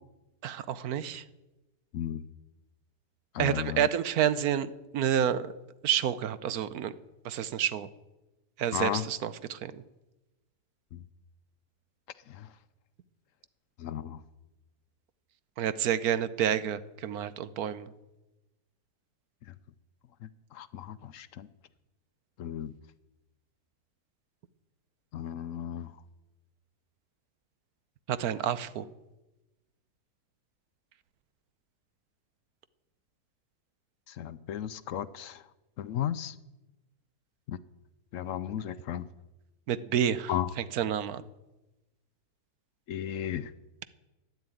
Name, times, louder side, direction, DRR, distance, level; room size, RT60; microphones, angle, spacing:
voice 1, 0.4-1.2 3.4-5.5 5.8-6.9 7.2-7.9 8.6-9.8 15.6-17.9 28.1-28.9 39.7-41.2, right 9 dB, 70° right, 1.2 m, -29 dB
voice 2, 1.9-2.3 3.3-3.9 8.7-9.0 10.9-11.0 12.3-12.5 13.8-14.2 20.2-21.5 22.4-22.7 25.1-25.9 34.1-35.4 35.8-36.3 37.5-37.6 38.1-39.1 40.3-40.5 42.9-43.5, left 10 dB, 65° left, 0.9 m, -34 dB
12.0 x 9.7 x 9.1 m
omnidirectional pair, 1.7 m